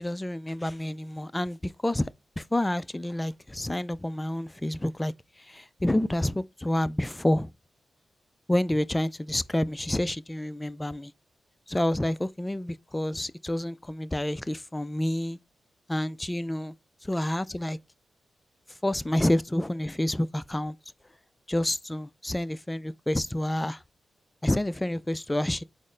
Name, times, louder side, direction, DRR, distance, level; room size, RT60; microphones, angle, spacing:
voice 1, 0.0-2.1 2.4-5.1 5.4-7.5 8.5-11.1 11.7-15.4 15.9-16.7 17.0-17.8 18.8-20.8 21.5-23.8 24.4-25.6, left 1 dB, 15° left, 0.3 m, -28 dB
4.2 x 2.0 x 3.7 m
cardioid pair, 50°, 0 cm